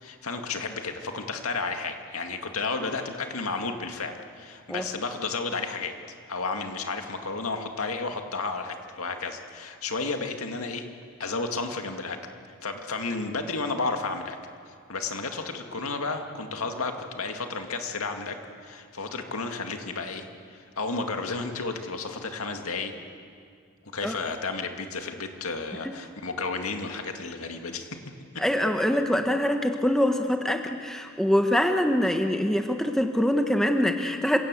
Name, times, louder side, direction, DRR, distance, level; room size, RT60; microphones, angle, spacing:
voice 1, 0.0-5.9 6.3-10.9 11.2-12.2 12.6-14.4 14.9-22.9 23.9-27.9 28.3-28.4, left 3 dB, 85° left, 5 dB, 2.1 m, -32 dB
voice 2, 28.4-34.4, left 1 dB, ahead, 5 dB, 1.1 m, -24 dB
27.5 x 16.5 x 8.3 m, 2.2 s
head